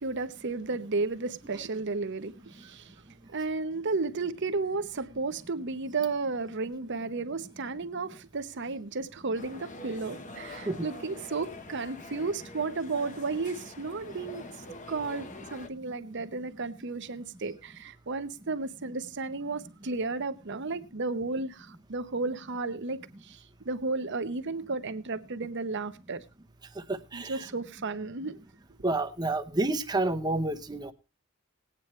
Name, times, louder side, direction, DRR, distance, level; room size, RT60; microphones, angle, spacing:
voice 1, 0.0-2.9 3.3-14.4 14.9-26.2 27.1-28.4, right 3 dB, 60° right, 0.9 m, -33 dB
sound 1, 9.3-15.7, left 2 dB, 35° left, 1.0 m, -45 dB
voice 2, 26.9-27.5 28.8-30.9, right 2 dB, 20° right, 0.9 m, -29 dB
19.5 x 9.1 x 3.2 m
head